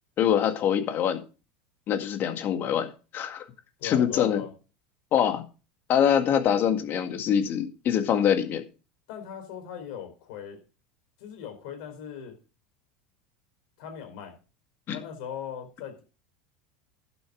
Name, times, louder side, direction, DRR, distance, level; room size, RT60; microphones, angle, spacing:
voice 1, 0.2-1.2 1.9-3.5 3.8-4.4 5.1-5.4 5.9-8.6 14.9-15.0, left 9 dB, 45° left, 1.9 m, -24 dB
voice 2, 3.8-4.5 9.1-10.6 11.2-12.4 13.8-14.4 14.9-16.0, left 9 dB, 65° left, 4.3 m, -39 dB
11.5 x 7.0 x 5.0 m
hypercardioid pair, 90°, 5 cm